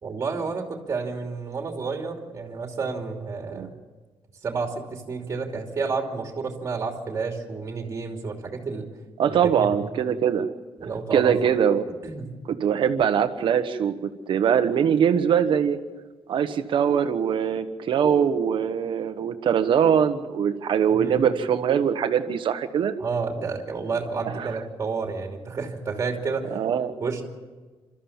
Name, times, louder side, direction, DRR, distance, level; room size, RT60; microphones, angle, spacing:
voice 1, 0.0-3.7 4.4-8.9 9.5-9.9 10.8-11.5 12.0-12.3 20.9-21.2 23.0-26.5 27.0-27.2, right 4 dB, 30° right, 2 dB, 2.9 m, -30 dB
voice 2, 9.2-10.5 11.1-11.9 12.5-15.8 16.3-22.9 24.2-24.6 26.5-26.9, right 8 dB, 60° right, 9 dB, 1.3 m, -22 dB
28.0 x 13.5 x 7.3 m, 1.3 s
wide cardioid pair, 170°, 9 cm